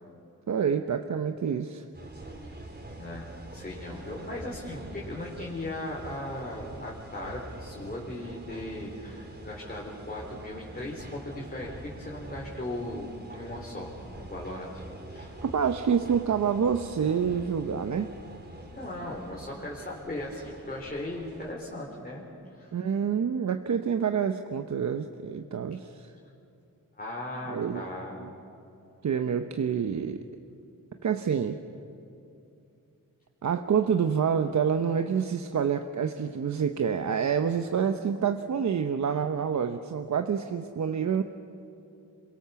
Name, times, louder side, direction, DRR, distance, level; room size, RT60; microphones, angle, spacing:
voice 1, 0.5-1.8 15.4-18.1 22.7-26.1 27.5-27.9 28.2-28.3 29.0-30.2 31.0-31.6 33.4-41.2, right 7 dB, 55° right, 7 dB, 0.9 m, -27 dB
sound 1, 1.9-21.5, right 1 dB, 30° right, 3.7 m, -45 dB
voice 2, 3.5-14.8 15.1-15.4 18.7-22.8 27.0-28.3, left 1 dB, 25° left, -3 dB, 3.8 m, -38 dB
27.0 x 23.0 x 7.1 m, 2.7 s
cardioid pair, 105°, 35 cm